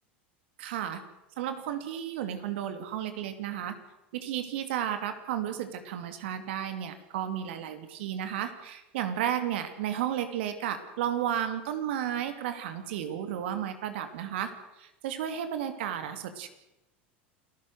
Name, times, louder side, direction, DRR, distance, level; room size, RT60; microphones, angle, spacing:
voice 1, 0.6-1.0 1.4-3.8 4.1-14.5 14.8-16.5, right 10 dB, 75° right, 9 dB, 2.6 m, -33 dB
28.5 x 15.0 x 6.5 m, 0.94 s
hypercardioid pair, 90°, 6 cm